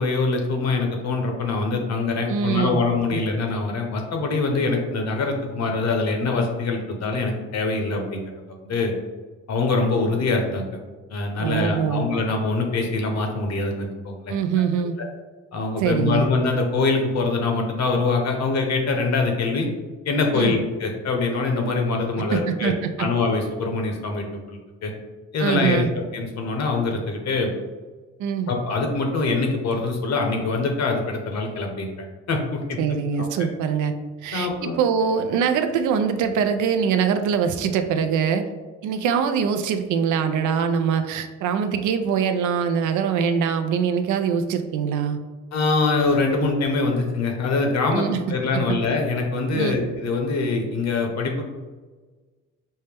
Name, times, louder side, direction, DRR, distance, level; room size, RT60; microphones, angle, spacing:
voice 1, 0.0-8.3 8.6-8.9 9.5-10.7 11.1-14.3 15.5-19.7 20.1-24.9 25.3-27.5 28.5-31.9 32.3-32.8 33.2-33.3 34.3-34.8 45.5-51.4, left 3 dB, 60° left, 2 dB, 0.9 m, -24 dB
voice 2, 2.3-2.8 3.1-3.2 11.4-12.1 14.3-14.9 15.8-16.3 20.3-20.5 22.3-23.1 25.4-25.9 28.2-28.5 32.8-33.9 34.2-38.4 38.8-45.2 47.9-48.2 48.5-48.8 49.5-49.8, right 7 dB, 80° right, 8 dB, 0.5 m, -23 dB
5.4 x 2.1 x 3.3 m, 1.3 s
cardioid pair, 90°, 30 cm